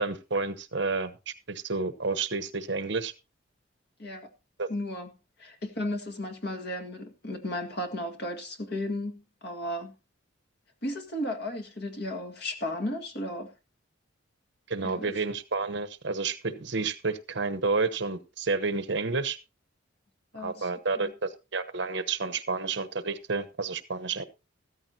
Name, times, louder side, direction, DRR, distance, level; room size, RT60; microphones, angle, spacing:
voice 1, 0.0-3.1 4.6-4.7 14.7-19.4 20.4-24.3, right 4 dB, 60° right, 1.0 m, -30 dB
voice 2, 4.7-5.1 5.4-9.9 10.8-13.5 14.8-15.1 20.3-20.7 21.0-21.1, left 1 dB, 55° left, 1.9 m, -34 dB
14.0 x 13.5 x 2.8 m
head